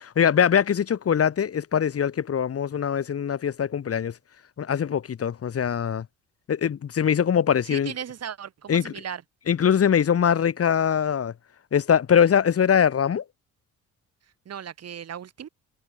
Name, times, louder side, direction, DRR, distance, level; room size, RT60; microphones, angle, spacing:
voice 1, 0.2-4.1 4.6-6.1 6.5-7.9 8.7-8.9 9.5-11.3 11.7-13.2, left 8 dB, 50° left, 2.7 m, -22 dB
voice 2, 7.7-9.2 14.5-15.5, right 8 dB, 55° right, 4.0 m, -36 dB
cardioid pair, 90°, 30 cm